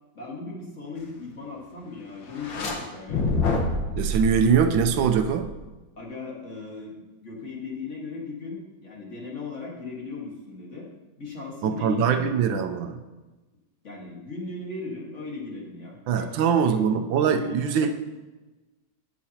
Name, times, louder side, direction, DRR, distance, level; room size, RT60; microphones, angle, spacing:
voice 1, 0.1-3.2 6.0-6.9 7.2-10.9 11.2-12.6 13.8-16.4 17.2-17.9, left 3 dB, 40° left, -3 dB, 1.9 m, -37 dB
sound 1, 2.3-2.7 3.1-5.7, left 2 dB, 80° left, 1.9 m, -27 dB
voice 2, 4.0-5.5 11.6-13.0 16.1-17.9, right 7 dB, 85° right, 7 dB, 1.4 m, -22 dB
16.5 x 5.9 x 2.9 m, 1.2 s
omnidirectional pair, 2.1 m